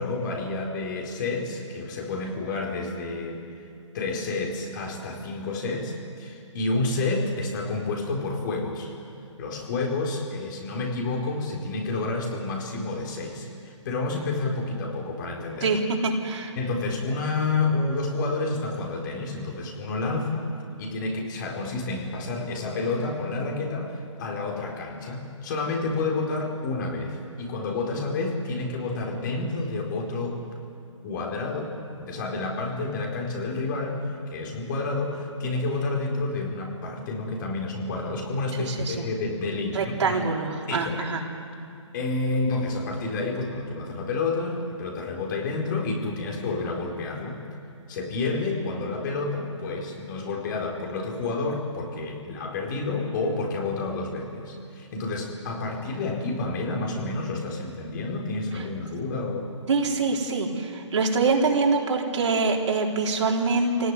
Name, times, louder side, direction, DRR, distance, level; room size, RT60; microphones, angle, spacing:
voice 1, 0.0-3.4 3.9-8.9 9.4-15.7 16.6-20.5 20.8-30.4 31.0-34.0 34.3-40.2 40.7-41.1 41.9-47.4 47.9-59.5, left 3 dB, 40° left, 1 dB, 4.4 m, -29 dB
voice 2, 15.6-16.5 38.6-39.1 39.7-41.2 59.7-63.9, right 4 dB, 65° right, 0 dB, 4.0 m, -25 dB
27.0 x 18.0 x 9.9 m, 2.5 s
hypercardioid pair, 155°, 17 cm